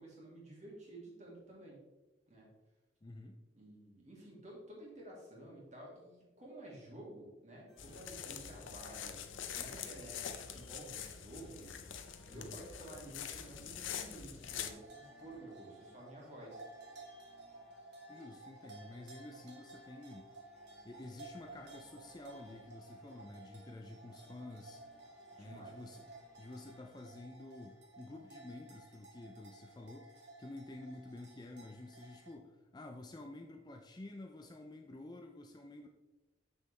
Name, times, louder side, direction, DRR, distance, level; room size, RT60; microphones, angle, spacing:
voice 1, 0.0-1.8 2.3-2.5 3.5-11.7 12.3-16.6 25.4-25.8, right 1 dB, 35° right, -3 dB, 2.3 m, -52 dB
voice 2, 3.0-3.4 12.3-12.7 18.1-20.3 20.8-24.8 25.4-30.1 30.4-35.9, left 2 dB, 20° left, 3 dB, 0.4 m, -50 dB
sound 1, 7.7-26.9, left 2 dB, ahead, 1.0 m, -66 dB
sound 2, 7.8-14.7, left 8 dB, 80° left, 0.7 m, -45 dB
sound 3, 14.4-32.3, right 2 dB, 60° right, 1.5 m, -55 dB
7.2 x 6.5 x 3.3 m, 1.1 s
head